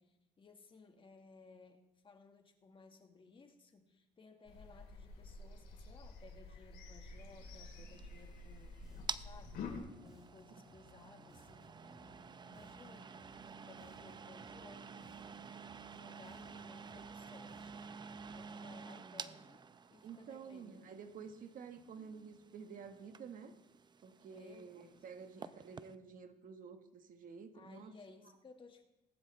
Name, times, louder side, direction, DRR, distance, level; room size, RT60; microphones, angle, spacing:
voice 1, 0.0-8.7 9.2-15.5 15.9-17.7 18.3-19.6 19.9-20.8 24.3-25.1 25.4-25.7 27.5-28.8, left 4 dB, 30° left, 4 dB, 1.7 m, -60 dB
sound 1, 4.5-9.8, left 3 dB, 75° left, 3.2 m, -49 dB
sound 2, 7.2-26.0, right 5 dB, 25° right, 0.5 m, -51 dB
Bass guitar, 8.8-18.7, left 1 dB, 5° right, 3.9 m, -63 dB
voice 2, 20.0-23.5 24.0-27.9, right 6 dB, 55° right, 7 dB, 1.5 m, -51 dB
19.0 x 11.5 x 3.4 m, 0.94 s
cardioid pair, 110°, 17 cm